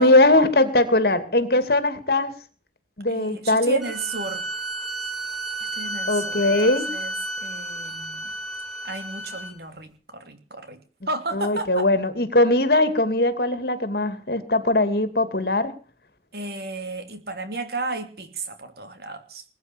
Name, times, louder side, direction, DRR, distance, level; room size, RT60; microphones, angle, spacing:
voice 1, 0.0-2.3 3.0-3.8 6.1-6.9 11.3-15.7, left 2 dB, 60° left, 2.7 m, -20 dB
voice 2, 3.1-4.5 5.6-8.3 8.8-11.9 16.3-19.4, right 3 dB, 60° right, 3.0 m, -34 dB
sound 1, 3.8-9.5, right 2 dB, ahead, 6.4 m, -32 dB
21.0 x 9.5 x 7.0 m
head